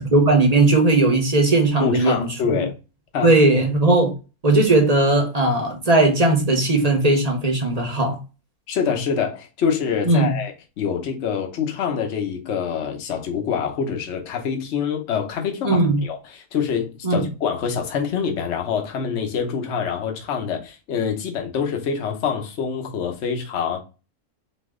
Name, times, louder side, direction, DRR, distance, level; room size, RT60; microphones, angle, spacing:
voice 1, 0.0-2.6 3.2-4.1 4.4-8.2 10.0-10.4 15.6-16.0 17.0-17.2, right 2 dB, 30° right, 0.9 m, -18 dB
voice 2, 1.8-2.7 3.1-3.7 8.7-23.8, left 7 dB, 55° left, 1.1 m, -25 dB
4.1 x 2.8 x 3.6 m
omnidirectional pair, 1.6 m